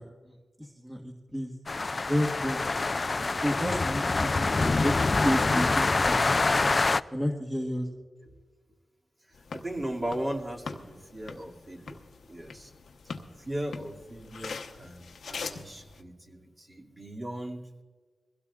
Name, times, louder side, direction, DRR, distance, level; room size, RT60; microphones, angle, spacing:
voice 1, 0.0-1.5 2.1-2.6 3.4-6.4 7.1-7.9, equal, 10° right, 0 dB, 1.6 m, -31 dB
sound 1, 1.7-7.0, left 3 dB, 40° left, 0.4 m, -25 dB
sound 2, 9.3-16.0, left 5 dB, 85° left, 1.0 m, -43 dB
voice 2, 9.5-12.0 12.3-12.7 13.4-17.6, right 1 dB, 30° right, -1 dB, 2.5 m, -37 dB
23.0 x 16.5 x 2.5 m, 1.4 s
cardioid pair, 70°, 0 cm